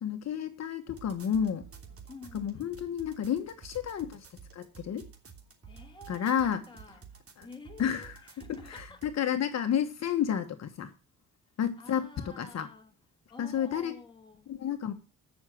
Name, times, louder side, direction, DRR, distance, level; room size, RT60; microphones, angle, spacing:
voice 1, 0.0-1.7 2.3-4.3 4.5-5.1 6.1-6.6 7.4-7.5 7.8-8.2 8.5-10.9 11.6-12.1 12.4-12.7 13.4-14.0 14.5-14.9, left 9 dB, 60° left, 1.4 m, -31 dB
sound 1, 0.9-9.2, right 6 dB, 50° right, 3.1 m, -51 dB
voice 2, 2.1-2.8 5.6-9.0 11.8-12.9 13.3-14.5, left 3 dB, 15° left, 2.7 m, -50 dB
14.0 x 6.5 x 6.3 m
cardioid pair, 90°, 30 cm